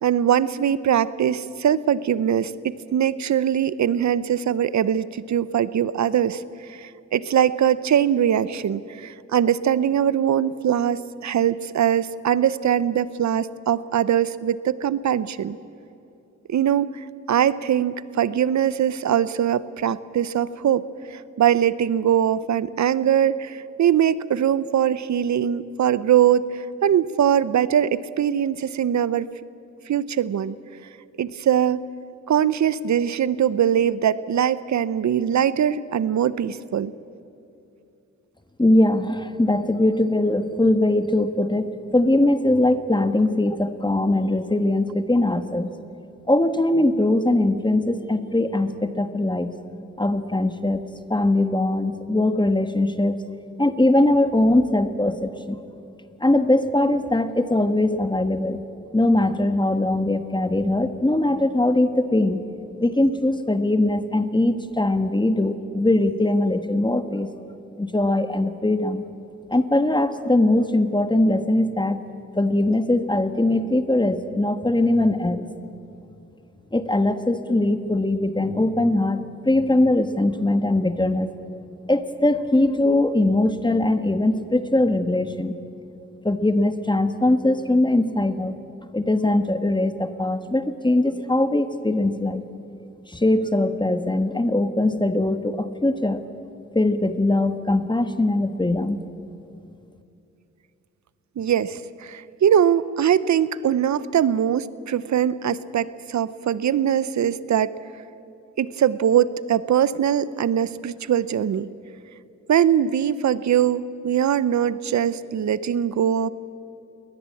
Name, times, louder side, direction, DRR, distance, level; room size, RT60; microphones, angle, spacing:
voice 1, 0.0-6.4 6.7-15.6 16.5-29.3 29.9-30.6 31.2-31.9 32.3-36.9 101.4-107.7 108.6-111.7 112.5-116.3, right 9 dB, 70° right, 17 dB, 0.8 m, -22 dB
voice 2, 38.6-45.7 46.3-49.5 50.0-50.8 51.1-53.2 53.6-55.6 56.2-58.6 58.9-62.4 62.8-67.3 67.8-69.0 69.5-72.0 72.4-75.5 76.7-81.3 81.9-85.5 86.2-88.6 88.9-92.4 93.1-96.2 96.7-99.0, left 1 dB, 15° left, 9 dB, 1.4 m, -21 dB
22.0 x 19.0 x 8.5 m, 2.7 s
cardioid pair, 60°, 29 cm